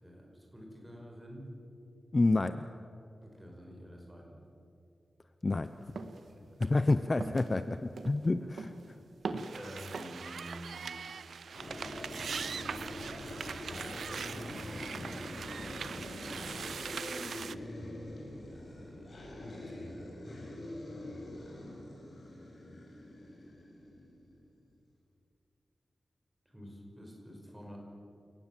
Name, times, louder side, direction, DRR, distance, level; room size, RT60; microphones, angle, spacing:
voice 1, 0.0-1.5 3.2-4.4 6.2-6.6 8.4-8.5 9.5-11.0 13.1-13.8 18.5-19.9 26.5-27.8, equal, 10° right, 0 dB, 5.4 m, -50 dB
voice 2, 2.1-2.7 5.4-5.7 6.6-8.7, left 2 dB, 30° left, 10 dB, 0.6 m, -28 dB
sound 1, 6.0-6.2 6.6-6.9 7.2-7.5 8.0-8.3 8.6-8.9 9.2-9.6 9.9-10.3, right 4 dB, 70° right, 1.6 m, -40 dB
sound 2, 9.4-17.5, right 6 dB, 90° right, 0.6 m, -41 dB
sound 3, 11.5-24.4, left 1 dB, 45° left, 6.8 m, -44 dB
29.5 x 18.0 x 7.5 m, 2.7 s
wide cardioid pair, 140°, 0 cm